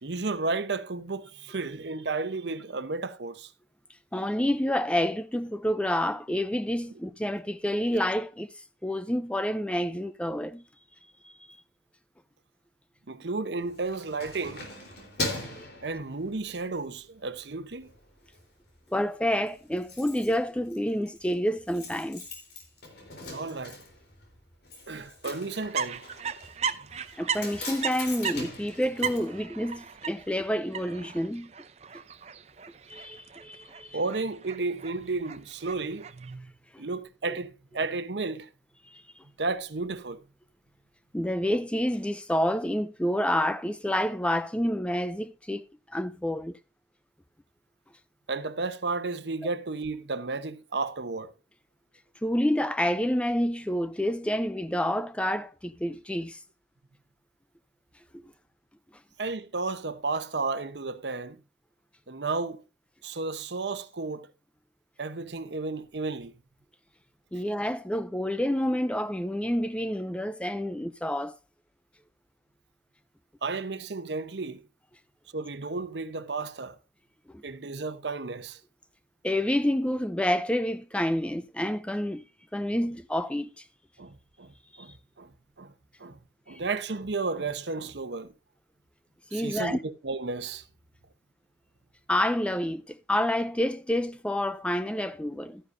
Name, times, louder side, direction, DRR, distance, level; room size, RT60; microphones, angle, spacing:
voice 1, 0.0-3.5 13.1-14.7 15.8-17.9 23.3-23.8 24.9-26.0 26.8-26.9 33.9-36.5 36.8-38.5 39.4-40.2 48.3-51.3 59.2-61.4 62.1-62.6 63.0-64.3 65.0-66.3 73.4-74.6 75.3-76.8 77.4-78.6 84.0-85.3 85.6-85.7 86.0-86.2 86.5-88.3 89.3-90.7, right 3 dB, 80° right, 0.9 m, -33 dB
voice 2, 4.1-8.5 8.8-10.6 11.2-11.3 15.3-15.7 18.9-22.2 27.2-31.5 32.9-34.0 38.9-39.0 41.1-46.6 52.2-56.4 58.1-58.2 67.3-71.3 77.3-77.4 79.2-82.2 82.5-83.5 89.3-89.8 92.1-95.6, left 1 dB, 5° left, 0.4 m, -28 dB
Keys jangling, 13.6-16.7 17.1-17.4 17.7-18.4 18.7-18.8 19.0-19.1 19.3-30.1 30.4-30.5, left 2 dB, 70° left, 3.7 m, -40 dB
sound 1, 25.7-36.3, right 7 dB, 40° right, 0.6 m, -37 dB
12.5 x 10.0 x 2.6 m
head